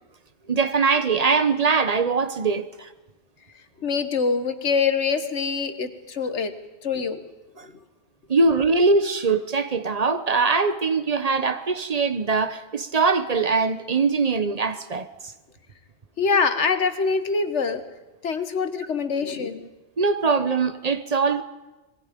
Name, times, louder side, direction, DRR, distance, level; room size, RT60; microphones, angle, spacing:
voice 1, 0.5-2.9 7.6-7.7 8.3-15.1 20.0-21.4, right 4 dB, 35° right, 1.1 m, -22 dB
voice 2, 3.8-6.5 6.8-7.2 7.6-7.7 16.2-17.8 18.2-19.7, left 5 dB, 85° left, 1.7 m, -24 dB
26.0 x 21.5 x 5.3 m
omnidirectional pair, 1.2 m